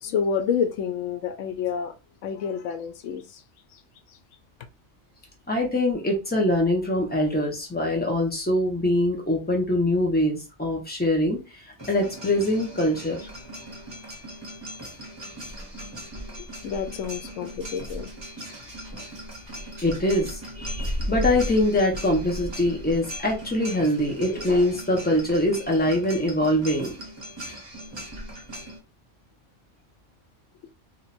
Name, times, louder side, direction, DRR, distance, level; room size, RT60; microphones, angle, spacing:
voice 1, 0.0-1.9 2.2-3.4 3.7-3.8 4.1-4.2 16.3-18.1, left 7 dB, 85° left, 1.0 m, -29 dB
voice 2, 5.5-11.4 11.9-13.2 19.8-20.3 20.6-26.9, left 1 dB, 10° left, 1.1 m, -23 dB
sound 1, 11.8-28.8, equal, 25° right, 1.1 m, -37 dB
3.0 x 2.7 x 4.2 m
omnidirectional pair, 1.2 m